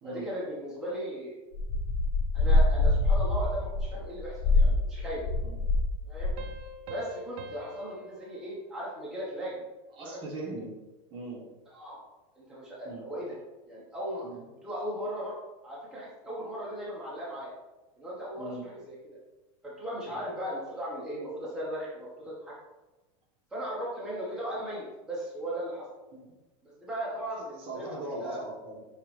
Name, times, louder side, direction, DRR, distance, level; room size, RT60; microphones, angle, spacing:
voice 1, 0.0-1.4 2.3-5.2 6.1-6.3 6.9-9.6 10.0-10.2 11.7-12.0 12.4-13.4 13.7-14.2 14.6-15.4 15.6-17.5 18.0-19.2 19.6-22.5 23.5-25.9 26.6-28.4, equal, 5° right, -7 dB, 0.8 m, -37 dB
sound 1, 1.5-5.9 6.2-6.6, left 2 dB, 80° left, 0.6 m, -25 dB
Piano, 6.4-9.7, right 1 dB, 60° right, 0.5 m, -46 dB
voice 2, 9.9-10.7 11.1-11.4 12.8-13.1 14.2-14.5 18.4-18.6 20.0-20.2 26.1-26.3 27.4-28.8, right 2 dB, 30° right, -2 dB, 1.2 m, -40 dB
5.5 x 3.0 x 3.1 m, 1.1 s
supercardioid pair, 150°, 16 cm